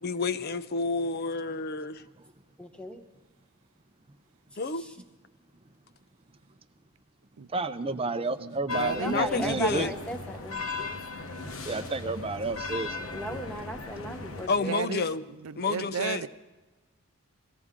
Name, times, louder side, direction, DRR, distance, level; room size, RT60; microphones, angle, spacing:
voice 1, 0.0-2.0 4.6-4.9 9.0-9.9 14.5-15.3 15.6-16.2, left 4 dB, 45° left, 0.5 m, -29 dB
voice 2, 2.6-3.0 9.0-10.6 13.1-14.7, right 1 dB, 5° left, 1.1 m, -36 dB
voice 3, 7.5-9.9 11.7-13.1, right 3 dB, 25° right, 0.6 m, -31 dB
voice 4, 8.4-9.2 11.5-11.6 14.7-15.0 15.4-16.3, right 6 dB, 75° right, 0.5 m, -33 dB
sound 1, 8.7-14.5, left 4 dB, 70° left, 1.1 m, -37 dB
22.0 x 15.5 x 3.7 m
head